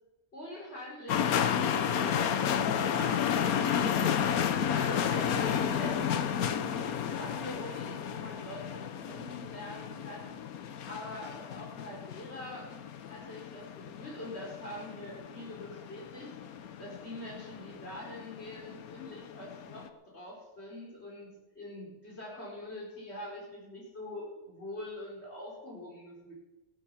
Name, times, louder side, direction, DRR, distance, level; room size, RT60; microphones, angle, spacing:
voice 1, 0.3-3.5 3.8-4.1 4.6-10.4 10.9-12.7 13.0-16.3 16.8-26.3, left 1 dB, 45° left, -3 dB, 5.0 m, -44 dB
sound 1, 1.1-19.9, left 8 dB, 85° left, 1.4 m, -32 dB
16.0 x 9.7 x 7.1 m, 1.1 s
omnidirectional pair, 1.5 m